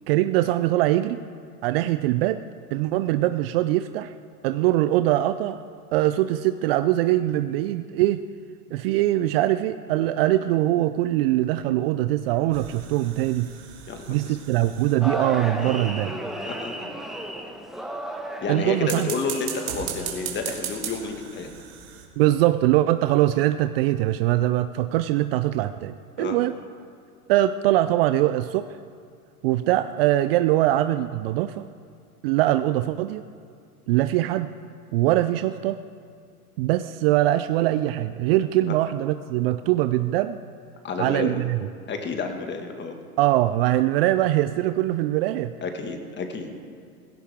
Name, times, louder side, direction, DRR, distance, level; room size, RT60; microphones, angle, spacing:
voice 1, 0.1-1.2 1.6-2.4 2.7-4.1 4.4-5.6 5.9-8.2 8.7-13.5 14.1-16.2 18.5-19.1 22.2-26.5 27.3-28.7 29.4-31.7 32.2-33.2 33.9-34.5 34.9-35.8 36.6-40.4 41.0-41.6 43.2-45.5, right 15 dB, 40° right, 12 dB, 0.5 m, -22 dB
sound 1, 12.5-15.4 18.7-22.0, right 8 dB, 60° right, 3.0 m, -37 dB
voice 2, 13.9-14.4 15.6-15.8 16.4-16.8 18.4-21.5 26.2-26.4 40.8-41.4 41.9-43.0 45.6-46.5, left 4 dB, 25° left, 5 dB, 1.8 m, -30 dB
sound 2, 15.0-20.1, right 1 dB, ahead, 1.2 m, -34 dB
16.5 x 16.5 x 3.6 m, 2.3 s
hypercardioid pair, 100°, 46 cm